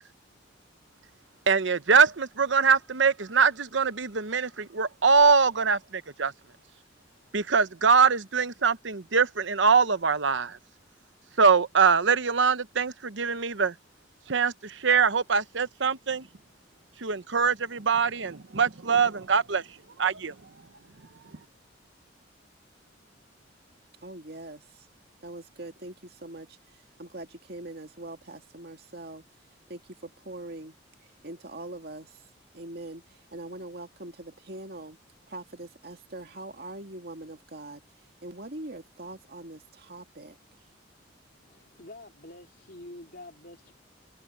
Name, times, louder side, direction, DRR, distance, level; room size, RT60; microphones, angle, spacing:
voice 1, 1.5-6.3 7.3-10.6 11.4-13.7 14.3-16.3 17.0-19.7 20.0-20.3, right 5 dB, 70° right, 0.9 m, -23 dB
voice 2, 24.0-24.9 25.2-29.2 29.7-30.8 31.0-32.2 32.5-35.0 35.3-37.8 38.2-40.4, right 2 dB, 55° right, 2.2 m, -42 dB
voice 3, 41.4-43.7, left 2 dB, 55° left, 3.9 m, -47 dB
open air
head